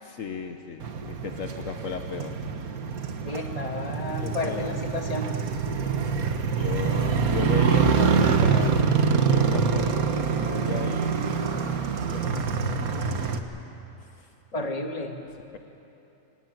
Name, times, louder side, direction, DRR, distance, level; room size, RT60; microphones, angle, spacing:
voice 1, 0.0-2.3 3.2-3.3 4.2-4.8 5.7-11.7 12.0-13.5 14.0-14.7, left 4 dB, 65° left, 5 dB, 1.4 m, -36 dB
Motorcycle, 0.8-13.4, right 6 dB, 85° right, 1.6 m, -25 dB
voice 2, 3.2-5.3 14.5-15.2, left 2 dB, 25° left, 3 dB, 1.8 m, -32 dB
25.5 x 17.5 x 9.2 m, 2.9 s
omnidirectional pair, 1.5 m